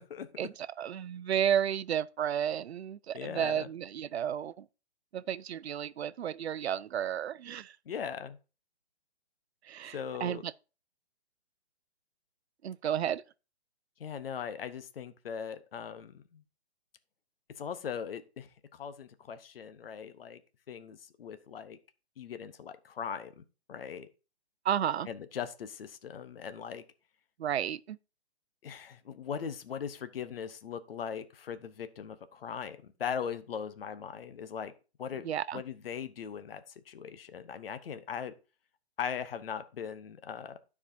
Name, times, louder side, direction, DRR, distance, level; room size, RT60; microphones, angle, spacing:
voice 1, 0.4-4.7 5.1-7.7 9.7-10.5 12.6-13.2 24.6-25.1 27.4-28.0 35.2-35.6, right 9 dB, 75° right, 0.6 m, -32 dB
voice 2, 3.1-3.7 7.9-8.4 9.9-10.4 14.0-16.4 17.6-20.4 20.7-21.8 22.2-23.3 23.7-24.1 25.1-26.8 28.6-34.7 35.0-38.3 39.0-40.6, left 7 dB, 60° left, 0.9 m, -39 dB
12.5 x 4.8 x 2.6 m
hypercardioid pair, 165°, 33 cm